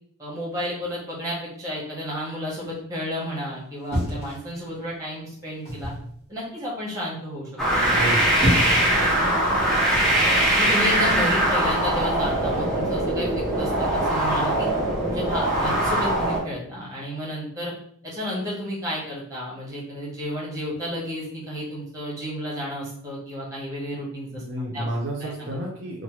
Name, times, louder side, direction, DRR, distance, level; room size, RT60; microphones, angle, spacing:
voice 1, 0.2-5.9 6.3-8.1 8.6-9.1 9.5-9.6 10.6-14.7 15.1-17.7 18.0-24.4 24.7-24.9 25.2-25.6, equal, 15° right, -5 dB, 1.1 m, -32 dB
sound 1, 3.9-4.9 5.7-6.1 8.0-8.9 9.9-10.2, equal, 30° left, 1.4 m, -27 dB
sound 2, 7.6-16.4, right 1 dB, ahead, 0.6 m, -22 dB
voice 2, 7.9-8.4 24.3-26.0, right 1 dB, 50° right, -3 dB, 0.5 m, -30 dB
2.9 x 2.1 x 3.1 m, 0.65 s
head